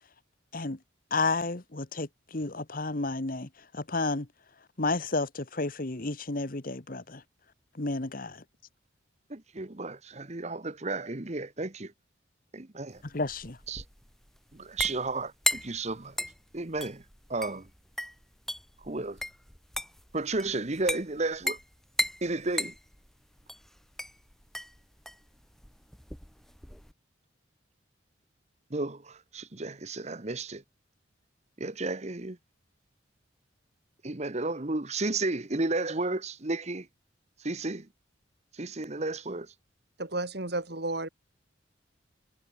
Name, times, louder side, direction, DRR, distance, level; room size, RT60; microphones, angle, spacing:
voice 1, 1.1-4.3 4.8-7.2 7.7-8.4 13.0-13.6, left 3 dB, 45° left, 1.4 m, -31 dB
voice 2, 9.3-11.9 12.5-13.0 13.7-13.8 14.5-16.1 16.5-17.0 17.3-17.7 18.8-19.2 20.1-21.6 22.2-22.7 28.7-30.6 31.6-32.4 34.0-36.9 37.4-37.9 38.5-39.5, right 2 dB, 35° right, 1.2 m, -33 dB
sound 1, 13.0-26.9, left 1 dB, ahead, 1.1 m, -36 dB
voice 3, 40.0-41.1, right 2 dB, 55° right, 2.8 m, -32 dB
head